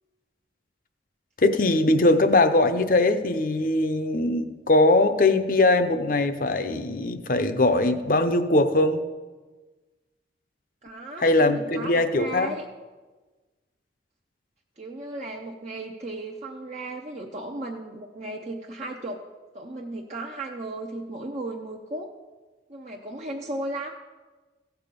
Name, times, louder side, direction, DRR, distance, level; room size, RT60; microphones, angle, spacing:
voice 1, 1.4-9.0 11.2-12.5, left 2 dB, 45° left, 9 dB, 0.7 m, -21 dB
voice 2, 10.8-12.6 14.8-19.2 19.5-22.1 22.7-23.9, right 2 dB, 35° right, 0 dB, 0.7 m, -35 dB
16.0 x 6.9 x 5.3 m, 1.3 s
head